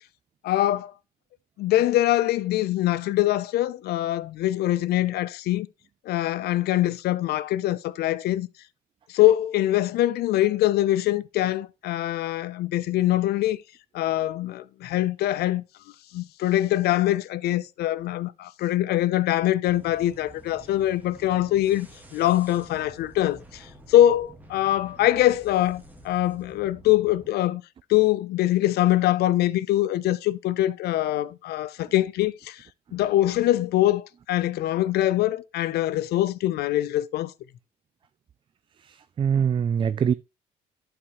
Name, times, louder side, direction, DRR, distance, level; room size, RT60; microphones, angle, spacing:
voice 1, 0.4-0.9 1.6-5.7 6.0-8.5 9.1-13.6 13.9-15.6 16.1-21.9 22.1-27.6 27.9-32.7 32.9-37.3, left 14 dB, 70° left, 0.6 m, -23 dB
sound 1, 19.7-27.3, equal, 10° right, 1.7 m, -49 dB
voice 2, 38.8-40.1, right 7 dB, 30° right, 0.4 m, -24 dB
11.5 x 5.0 x 3.1 m
cardioid pair, 110°, 17 cm